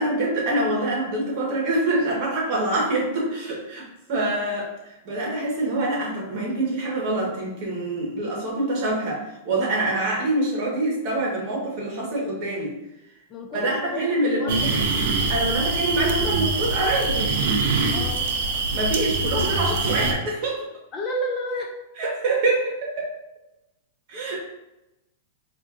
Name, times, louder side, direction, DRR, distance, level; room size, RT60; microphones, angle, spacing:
voice 1, 0.0-12.8 13.5-14.7 15.3-17.3 18.7-20.7 22.0-23.1 24.1-24.4, right 2 dB, 40° right, -3 dB, 1.3 m, -25 dB
voice 2, 13.3-14.7 17.9-18.3 20.9-21.8, equal, 20° left, 1 dB, 0.4 m, -31 dB
sound 1, 14.5-20.1, right 3 dB, 55° right, 0.5 m, -24 dB
4.5 x 2.5 x 2.5 m, 0.94 s
supercardioid pair, 160°, 0 cm